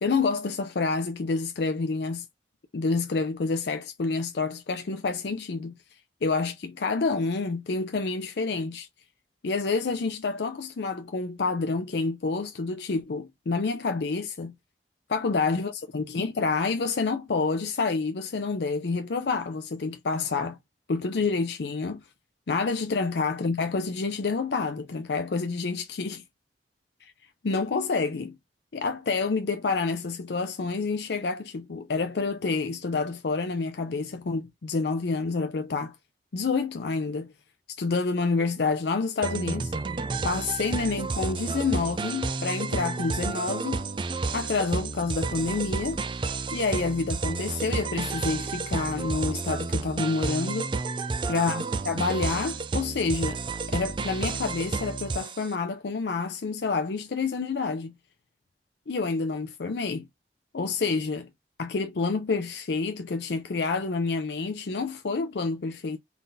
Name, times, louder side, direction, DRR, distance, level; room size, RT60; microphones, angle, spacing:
voice 1, 0.0-2.2 2.7-5.7 6.2-8.9 9.4-14.5 15.1-20.6 20.9-22.0 22.5-26.2 27.0-27.1 27.4-28.3 28.7-35.9 36.3-37.3 37.8-39.7 40.2-43.8 44.3-46.0 46.5-50.8 51.3-53.4 53.7-57.9 58.9-60.1 60.5-61.3 61.6-66.0, left 4 dB, 65° left, 0.5 m, -28 dB
sound 1, 39.2-55.5, right 4 dB, 25° right, 0.3 m, -31 dB
3.9 x 3.5 x 2.6 m
head